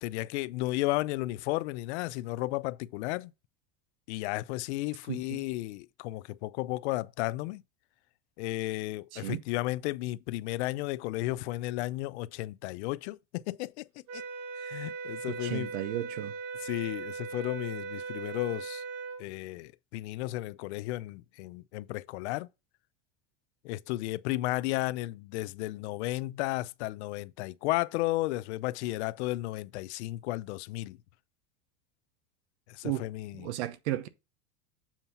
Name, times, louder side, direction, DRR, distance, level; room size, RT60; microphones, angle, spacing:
voice 1, 0.0-3.3 4.1-7.6 8.4-13.9 14.1-14.2 14.6-15.7 16.6-18.8 19.2-22.5 23.6-31.0 32.7-33.5, left 18 dB, 80° left, 0.5 m, -33 dB
voice 2, 5.1-5.4 9.1-9.4 15.3-16.3 32.8-33.0 33.3-34.1, right 14 dB, 85° right, 0.9 m, -34 dB
sound 1, 14.1-19.2, right 5 dB, 50° right, 1.1 m, -39 dB
7.3 x 2.8 x 5.6 m
supercardioid pair, 140°, 33 cm